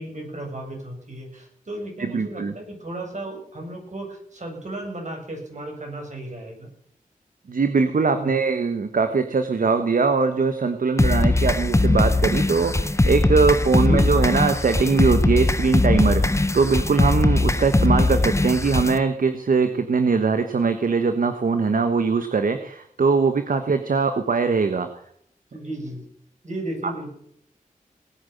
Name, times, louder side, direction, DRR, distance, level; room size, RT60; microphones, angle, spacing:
voice 1, 0.0-6.7 8.1-8.3 13.8-14.0 25.5-26.0 26.4-27.1, right 1 dB, 55° right, 1 dB, 7.6 m, -34 dB
voice 2, 2.0-2.5 7.5-24.9 26.8-27.1, right 4 dB, 70° right, 8 dB, 1.3 m, -21 dB
sound 1, 11.0-19.0, left 2 dB, 20° left, 1.0 m, -20 dB
20.0 x 9.3 x 6.9 m, 0.68 s
wide cardioid pair, 65°, 15 cm